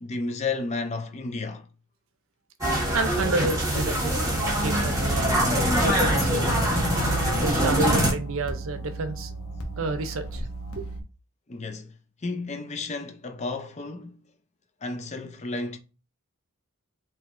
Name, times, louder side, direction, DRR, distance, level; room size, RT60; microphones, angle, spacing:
voice 1, 0.0-1.7 11.5-14.2 14.8-15.8, left 3 dB, 30° left, 0.5 m, -32 dB
sound 1, 2.6-8.1, right 1 dB, 15° right, 1.2 m, -23 dB
voice 2, 2.9-4.3 4.6-5.4 5.8-6.7 7.4-9.3 9.8-10.5 10.7-10.9, right 3 dB, 65° right, 0.6 m, -30 dB
sound 2, 6.0-11.0, right 1 dB, 75° left, 0.9 m, -35 dB
4.7 x 3.0 x 2.5 m
head